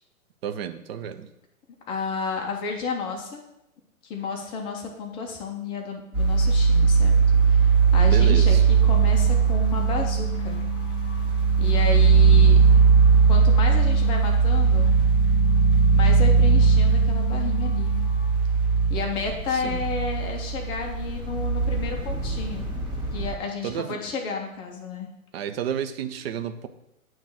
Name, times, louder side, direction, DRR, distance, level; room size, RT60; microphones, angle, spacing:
voice 1, 0.4-1.3 8.0-8.6 19.5-19.8 23.6-24.0 25.3-26.7, right 9 dB, 45° right, 10 dB, 0.6 m, -31 dB
voice 2, 1.9-3.4 4.0-7.1 7.5-10.6 11.6-12.6 13.3-15.0 15.9-18.0 18.9-22.7 23.1-25.1, left 4 dB, 10° left, 1 dB, 0.4 m, -32 dB
sound 1, 6.1-23.4, right 5 dB, 25° right, 1.9 m, -19 dB
sound 2, 8.7-18.4, left 6 dB, 45° left, 0.8 m, -37 dB
8.7 x 3.1 x 6.1 m, 0.84 s
hypercardioid pair, 125°, 43 cm